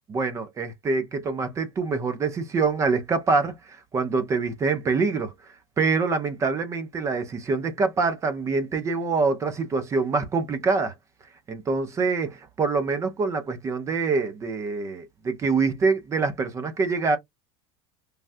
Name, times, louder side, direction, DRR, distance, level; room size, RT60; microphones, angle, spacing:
voice 1, 0.1-10.9 11.5-17.2, right 4 dB, 20° right, 0.5 m, -25 dB
3.3 x 2.3 x 2.6 m
supercardioid pair, 155°, 14 cm